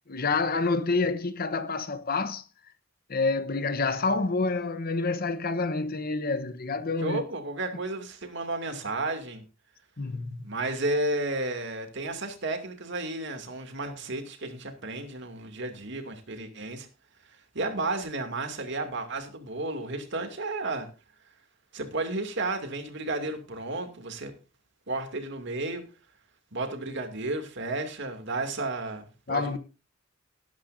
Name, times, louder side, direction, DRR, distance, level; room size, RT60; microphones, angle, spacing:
voice 1, 0.1-2.4 3.1-7.2 10.0-10.5 29.3-29.6, left 3 dB, 45° left, 1.0 m, -28 dB
voice 2, 7.0-9.4 10.4-16.9 17.5-20.9 21.7-24.3 24.9-25.8 26.5-29.6, right 2 dB, 60° right, 2.6 m, -32 dB
19.0 x 10.5 x 2.7 m
head